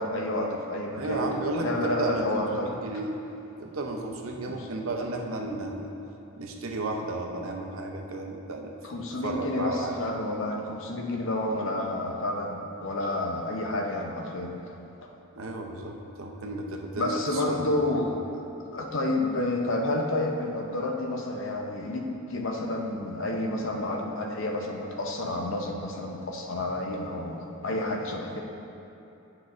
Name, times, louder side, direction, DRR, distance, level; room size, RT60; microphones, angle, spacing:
voice 1, 0.0-1.3 1.6-2.7 4.4-4.7 8.8-14.5 15.0-15.1 16.9-18.2 18.7-28.4, left 2 dB, 60° left, 1 dB, 0.7 m, -30 dB
voice 2, 1.0-3.2 3.6-5.9 6.4-10.0 15.4-17.6, right 2 dB, 70° right, 2 dB, 0.7 m, -33 dB
9.5 x 6.2 x 2.5 m, 2.8 s
head